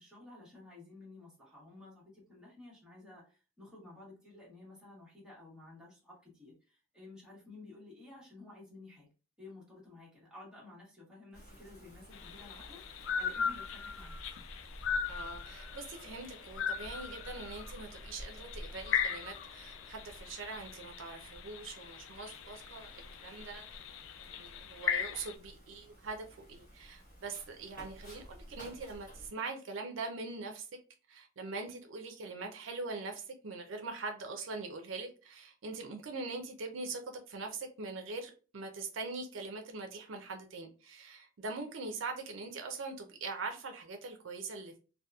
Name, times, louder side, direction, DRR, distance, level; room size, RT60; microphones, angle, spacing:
voice 1, 0.0-9.1 9.4-14.4, left 2 dB, 5° right, 1.1 m, -53 dB
Wind, 11.3-29.3, equal, 45° left, 0.9 m, -52 dB
sound 1, 12.1-25.4, left 7 dB, 70° left, 0.3 m, -39 dB
voice 2, 15.1-23.8 24.3-30.7 31.1-44.8, right 3 dB, 70° right, 0.5 m, -42 dB
sound 2, 15.2-20.3, left 1 dB, 50° right, 0.9 m, -61 dB
2.8 x 2.2 x 2.3 m
head